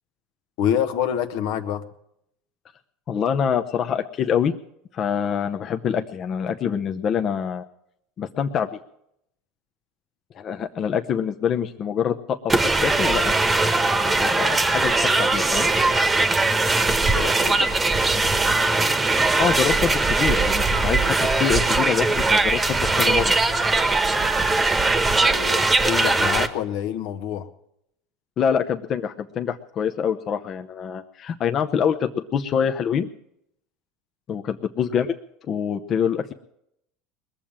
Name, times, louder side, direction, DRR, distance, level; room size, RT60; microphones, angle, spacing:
voice 1, 0.6-1.8 17.1-17.8 25.2-27.5, left 9 dB, 70° left, 9 dB, 1.1 m, -27 dB
voice 2, 3.1-4.5 4.9-7.6 8.2-8.7 10.3-12.5 12.8-15.7 19.4-23.4 28.4-33.1 34.3-35.2 35.5-36.3, left 7 dB, 40° left, 6 dB, 0.7 m, -25 dB
sound 1, 12.5-26.5, right 3 dB, 15° right, 1.1 m, -20 dB
20.5 x 7.4 x 8.7 m, 0.77 s
supercardioid pair, 105°, 0 cm